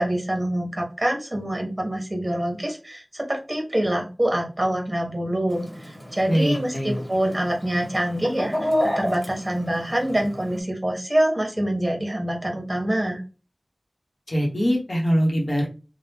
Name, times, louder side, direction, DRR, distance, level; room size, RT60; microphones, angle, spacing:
voice 1, 0.0-13.2, right 1 dB, 35° right, 2 dB, 1.0 m, -25 dB
Chicken rooster, 5.5-10.6, left 1 dB, 20° left, 1.7 m, -31 dB
voice 2, 6.3-7.0 14.3-15.7, equal, 65° left, -3 dB, 0.9 m, -22 dB
2.8 x 2.2 x 3.4 m, 0.33 s
wide cardioid pair, 50°, 0 cm